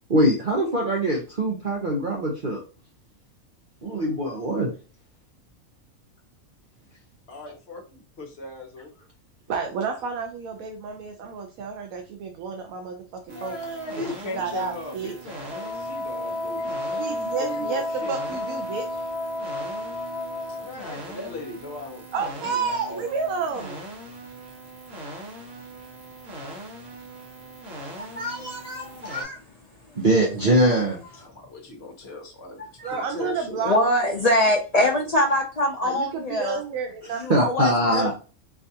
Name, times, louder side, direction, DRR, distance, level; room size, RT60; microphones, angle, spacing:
voice 1, 0.1-2.6 3.8-4.7 30.0-31.0 37.3-38.1, right 1 dB, 45° right, -2 dB, 0.8 m, -22 dB
voice 2, 7.3-8.9 13.3-17.0 17.4-18.1 20.6-23.1 31.2-32.6 32.9-33.6, left 1 dB, 50° left, 1 dB, 1.1 m, -37 dB
voice 3, 9.5-13.0 13.4-13.6 14.0-14.1 14.3-15.1 16.9-19.1 22.1-23.8 32.8-34.1 34.7-34.9 35.8-37.5 37.9-38.1, right 5 dB, 80° right, 3 dB, 1.1 m, -30 dB
sound 1, 13.3-29.2, right 1 dB, 65° right, 1.4 m, -41 dB
Wind instrument woodwind instrument, 15.5-20.7, left 1 dB, 20° left, 0.9 m, -31 dB
voice 4, 28.1-29.4 32.8-33.0 33.6-36.6 37.2-38.1, left 1 dB, 85° left, -1 dB, 0.3 m, -24 dB
4.5 x 2.4 x 2.7 m, 0.35 s
omnidirectional pair, 1.5 m